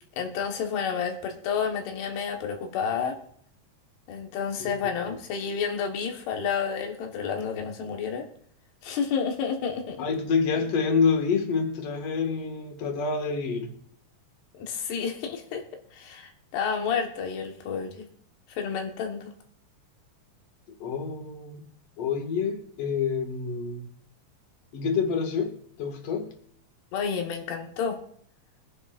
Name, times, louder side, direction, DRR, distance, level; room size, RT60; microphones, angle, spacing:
voice 1, 0.1-3.2 4.1-8.3 8.8-10.0 14.5-15.6 15.9-18.1 18.5-19.3 26.9-28.0, left 6 dB, 80° left, 3 dB, 3.4 m, -30 dB
voice 2, 10.0-13.7 20.8-21.7 22.0-23.9 24.7-26.3, left 5 dB, 45° left, 4 dB, 2.3 m, -27 dB
24.0 x 9.9 x 2.5 m, 0.63 s
omnidirectional pair, 4.7 m